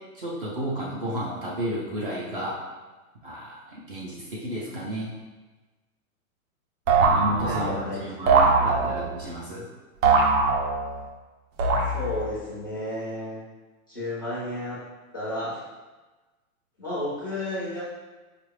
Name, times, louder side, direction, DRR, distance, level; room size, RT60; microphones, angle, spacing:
voice 1, 0.1-2.6 3.2-5.1 7.0-9.6, equal, 40° right, -5 dB, 0.6 m, -32 dB
sound 1, 6.9-7.8 8.3-9.2 10.0-11.0 11.6-12.3, right 4 dB, 70° right, 0.8 m, -21 dB
voice 2, 7.4-9.0 11.9-13.4 13.9-14.8 15.1-15.6 16.8-17.8, left 1 dB, 15° left, -9 dB, 0.4 m, -32 dB
4.8 x 2.5 x 3.1 m, 1.2 s
hypercardioid pair, 175°, 43 cm